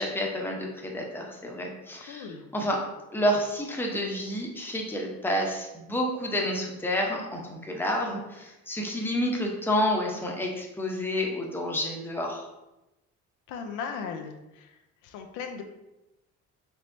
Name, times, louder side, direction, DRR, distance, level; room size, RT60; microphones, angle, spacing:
voice 1, 0.0-2.3 2.5-2.8 3.1-12.4, left 1 dB, 5° left, -1 dB, 0.8 m, -29 dB
voice 2, 2.0-2.4 13.5-15.6, left 6 dB, 90° left, 4 dB, 0.6 m, -38 dB
4.5 x 3.2 x 2.6 m, 0.95 s
cardioid pair, 95°, 30 cm